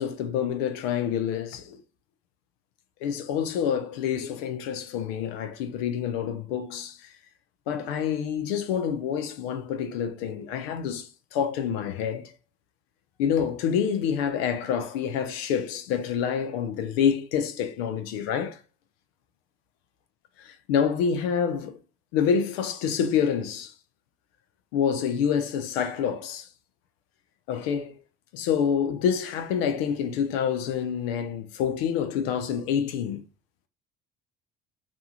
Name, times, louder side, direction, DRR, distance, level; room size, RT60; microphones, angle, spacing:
voice 1, 0.0-1.8 3.0-7.1 7.7-12.3 13.2-18.6 20.4-21.8 22.1-23.7 24.7-26.5 27.5-28.0 28.3-33.2, left 7 dB, 85° left, 0.6 m, -27 dB
2.6 x 2.3 x 2.8 m
hypercardioid pair, 70°, 30 cm